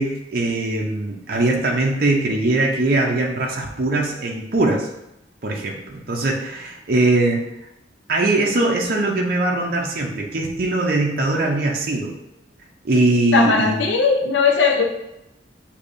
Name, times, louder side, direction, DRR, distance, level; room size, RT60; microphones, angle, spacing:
voice 1, 0.0-4.9 5.4-7.4 8.1-12.1 12.8-13.8, right 2 dB, 55° right, -1 dB, 0.6 m, -21 dB
voice 2, 13.3-14.8, left 5 dB, 80° left, 3 dB, 0.6 m, -18 dB
6.5 x 2.7 x 2.6 m, 0.86 s
head